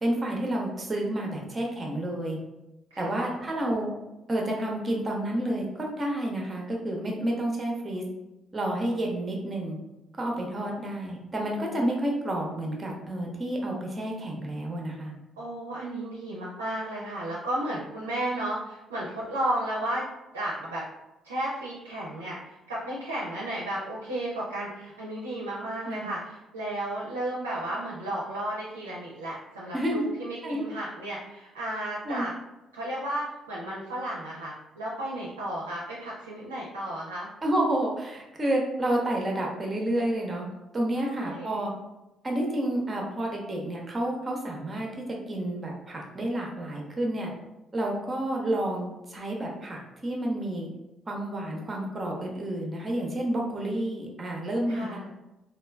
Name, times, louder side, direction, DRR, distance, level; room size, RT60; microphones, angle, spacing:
voice 1, 0.0-2.4 3.0-3.9 4.3-8.0 8.5-9.8 10.2-15.1 25.9-26.1 29.7-30.1 30.4-30.7 32.0-32.3 37.4-40.5 40.7-41.7 42.2-47.3 47.7-50.7 51.1-55.0, right 1 dB, 30° right, -1 dB, 0.7 m, -30 dB
voice 2, 2.9-3.4 15.4-20.1 20.3-20.8 21.2-32.3 32.7-37.3 41.0-41.6 54.7-55.1, right 1 dB, 85° right, -6 dB, 0.5 m, -33 dB
3.0 x 2.3 x 2.2 m, 0.97 s
hypercardioid pair, 45°, 0 cm